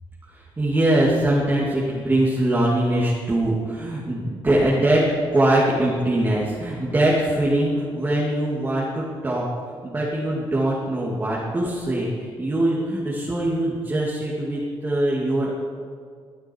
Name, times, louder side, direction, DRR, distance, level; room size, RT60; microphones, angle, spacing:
voice 1, 0.6-9.5 9.8-15.6, right 1 dB, 20° right, -5 dB, 2.7 m, -22 dB
22.0 x 12.5 x 4.7 m, 2.1 s
cardioid pair, 130°, 10 cm